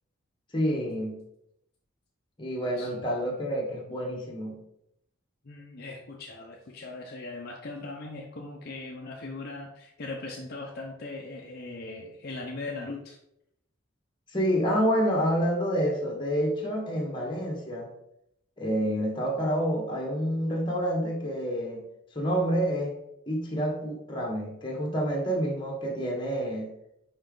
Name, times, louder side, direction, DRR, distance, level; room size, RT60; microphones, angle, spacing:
voice 1, 0.5-1.2 2.4-4.6 14.3-17.9 18.6-21.8 22.1-22.9 23.3-26.7, equal, 25° left, 0 dB, 1.3 m, -28 dB
voice 2, 5.4-13.2, left 3 dB, 50° left, 0 dB, 0.6 m, -39 dB
5.5 x 4.8 x 3.8 m, 0.78 s
head